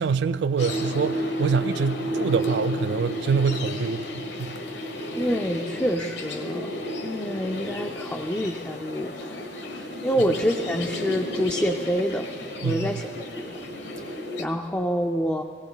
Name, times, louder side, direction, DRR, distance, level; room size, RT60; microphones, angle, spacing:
voice 1, 0.0-4.6 12.6-12.9, right 5 dB, 65° right, 0.3 m, -25 dB
sound 1, 0.6-14.5, left 1 dB, 65° left, 1.1 m, -32 dB
voice 2, 5.1-6.8 7.0-9.4 9.7-12.3 12.6-13.1 13.4-13.6 14.0-15.4, equal, 10° left, 0.4 m, -27 dB
Deadly swinging sword, 9.1-14.2, right 2 dB, 85° right, 1.1 m, -45 dB
18.0 x 17.5 x 3.8 m
head